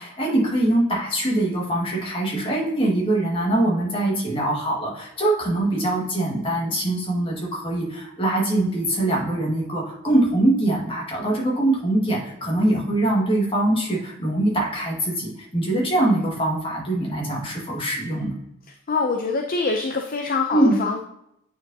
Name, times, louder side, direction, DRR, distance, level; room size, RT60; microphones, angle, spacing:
voice 1, 0.0-18.3 20.5-20.8, right 1 dB, 25° left, -3 dB, 1.8 m, -23 dB
voice 2, 18.9-21.0, left 4 dB, 40° left, 3 dB, 0.5 m, -24 dB
8.5 x 4.6 x 2.8 m, 0.80 s
head